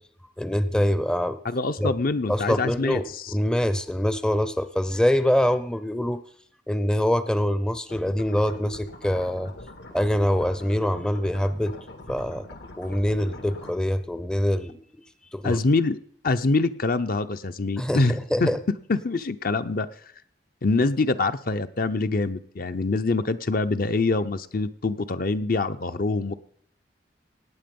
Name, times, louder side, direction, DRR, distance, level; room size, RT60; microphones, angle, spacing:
voice 1, 0.4-1.4 1.8-1.9 2.3-6.2 6.7-9.5 9.9-11.7 12.1-12.5 12.8-14.8 15.3-15.6 17.8-18.6, equal, 5° left, 12 dB, 0.5 m, -24 dB
voice 2, 1.4-3.0 15.4-16.0 16.2-18.5 18.9-19.9 20.6-26.3, left 3 dB, 55° left, 11 dB, 0.7 m, -24 dB
sound 1, 7.9-13.8, left 1 dB, 75° left, 1.9 m, -43 dB
18.0 x 8.7 x 5.4 m, 0.62 s
head